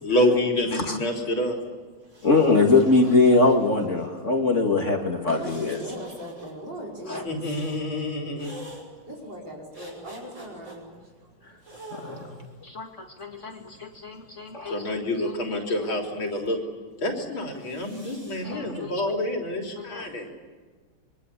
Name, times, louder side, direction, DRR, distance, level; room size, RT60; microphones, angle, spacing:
voice 1, 0.0-1.6 7.2-8.6 14.7-16.6 17.0-20.3, left 1 dB, 80° left, 1 dB, 4.3 m, -27 dB
sound 1, 2.0-4.1 5.4-6.5 7.4-7.8 8.4-8.8 9.7-10.8 11.6-12.5 13.3-14.4 17.5-18.4, right 1 dB, 35° right, 7.8 m, -46 dB
voice 2, 2.2-5.8 7.1-7.2 11.9-12.4 12.6-14.9 18.4-18.9 19.8-20.0, left 3 dB, 35° left, 3 dB, 2.5 m, -23 dB
voice 3, 5.3-7.4 9.1-10.9 11.2-11.3 14.1-14.2, equal, 60° right, -2 dB, 6.3 m, -39 dB
26.5 x 24.0 x 8.4 m, 1.4 s
omnidirectional pair, 2.2 m